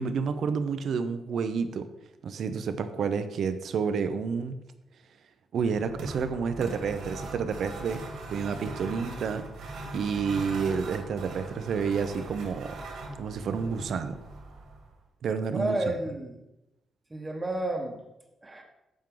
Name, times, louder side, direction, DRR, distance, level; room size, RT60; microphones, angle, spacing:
voice 1, 0.0-1.9 2.2-4.6 5.5-8.0 8.3-9.5 9.9-12.8 13.2-14.2 15.2-15.9, right 6 dB, 55° right, 10 dB, 0.7 m, -29 dB
sound 1, 5.6-15.0, right 2 dB, 85° right, 2.1 m, -41 dB
voice 2, 15.5-16.4 17.1-18.0 18.4-18.6, right 2 dB, 15° right, 2 dB, 1.3 m, -31 dB
10.5 x 7.3 x 3.9 m, 0.94 s
wide cardioid pair, 175°, 0 cm